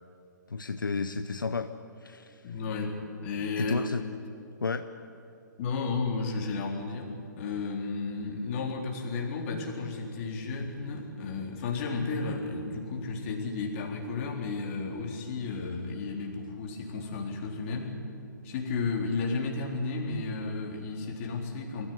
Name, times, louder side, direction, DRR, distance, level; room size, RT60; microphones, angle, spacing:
voice 1, 0.5-1.7 2.0-2.4 3.6-4.0 4.6-4.9, left 4 dB, 85° left, 10 dB, 0.8 m, -32 dB
voice 2, 2.4-3.8 5.6-18.0 18.4-21.9, left 4 dB, 40° left, 0 dB, 4.0 m, -33 dB
23.0 x 15.0 x 9.6 m, 2.6 s
figure-of-eight pair, 130°, 11 cm